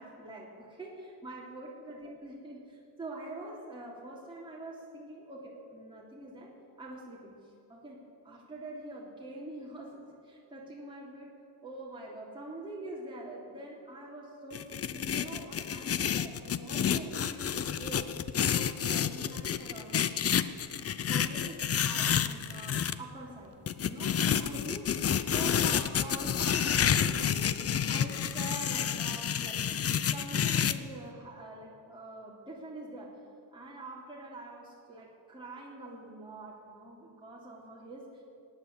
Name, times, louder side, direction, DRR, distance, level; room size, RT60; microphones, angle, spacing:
voice 1, 0.0-11.3 11.6-20.3 21.1-23.5 23.8-25.0 25.3-29.8 30.1-33.2 33.5-38.2, right 2 dB, 10° right, -5 dB, 3.1 m, -45 dB
sound 1, 14.5-22.9 23.7-30.7, left 8 dB, 30° left, 0.6 m, -29 dB
17.5 x 9.6 x 8.4 m, 2.5 s
cardioid pair, 115°, 49 cm